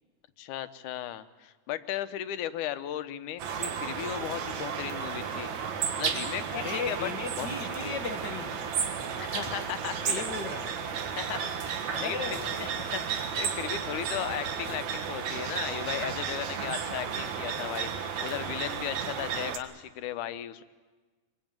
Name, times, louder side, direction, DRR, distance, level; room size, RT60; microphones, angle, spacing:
voice 1, 0.4-5.7 6.0-7.1 7.4-8.0 9.2-10.2 11.2-20.6, left 12 dB, 80° left, 12 dB, 2.4 m, -36 dB
sound 1, 3.4-19.6, right 7 dB, 70° right, 2.9 m, -33 dB
voice 2, 6.5-8.8 10.0-10.8 11.9-12.5 14.7-14.8, left 5 dB, 65° left, 5 dB, 1.1 m, -36 dB
24.0 x 22.0 x 9.0 m, 1.3 s
omnidirectional pair, 3.5 m